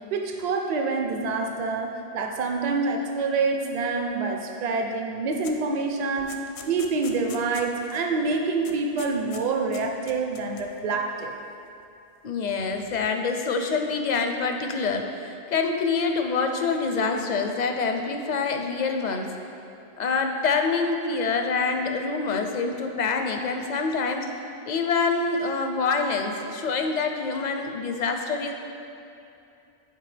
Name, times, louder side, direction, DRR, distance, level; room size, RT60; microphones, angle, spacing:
voice 1, 0.1-6.3 6.6-11.3, right 4 dB, 45° right, 3 dB, 0.6 m, -26 dB
sound 1, 5.4-5.7 6.0-8.0 8.3-8.4 8.6-9.4 9.7-10.8, left 6 dB, 80° left, 0.9 m, -43 dB
voice 2, 12.2-19.3 20.0-24.3 24.7-28.5, left 4 dB, 55° left, 4 dB, 0.5 m, -26 dB
11.0 x 4.6 x 3.3 m, 2.7 s
omnidirectional pair, 1.1 m